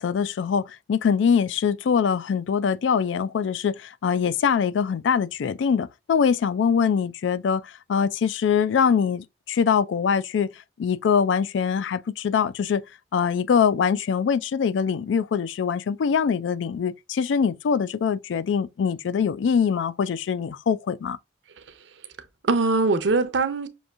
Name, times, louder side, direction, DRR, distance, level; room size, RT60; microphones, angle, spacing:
voice 1, 0.0-10.5 10.8-12.8 13.1-21.2, left 6 dB, 80° left, 0.3 m, -23 dB
voice 2, 21.5-22.1 22.4-23.7, right 3 dB, 75° right, 0.7 m, -23 dB
6.2 x 2.6 x 2.4 m
head